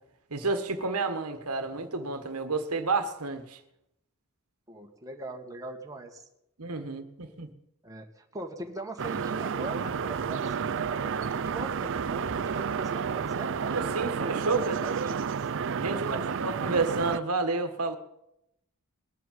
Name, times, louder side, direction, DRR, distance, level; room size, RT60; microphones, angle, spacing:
voice 1, 0.3-3.6 6.6-7.5 13.6-14.7 15.8-18.0, right 3 dB, 75° right, 1.5 m, -30 dB
voice 2, 4.7-6.2 7.8-13.5 14.5-15.2 15.8-16.2, right 1 dB, 15° right, 1.8 m, -41 dB
sound 1, 9.0-17.2, right 6 dB, 60° right, 0.6 m, -31 dB
20.5 x 7.5 x 9.3 m
head